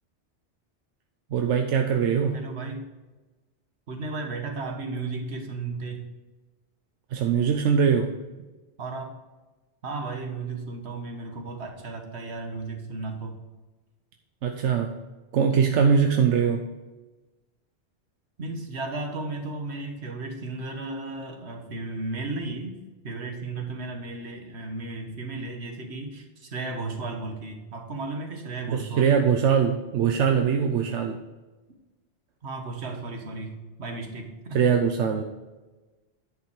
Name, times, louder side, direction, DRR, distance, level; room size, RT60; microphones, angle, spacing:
voice 1, 1.3-2.4 7.1-8.2 14.4-14.9 15.3-16.7 28.7-31.2 34.5-35.2, right 7 dB, 90° right, 4 dB, 1.0 m, -22 dB
voice 2, 2.3-2.9 3.9-6.1 8.8-9.1 9.8-13.4 18.4-22.8 23.0-29.1 32.4-34.6, right 3 dB, 70° right, 4 dB, 1.6 m, -34 dB
10.0 x 5.5 x 4.7 m, 1.2 s
omnidirectional pair, 1.2 m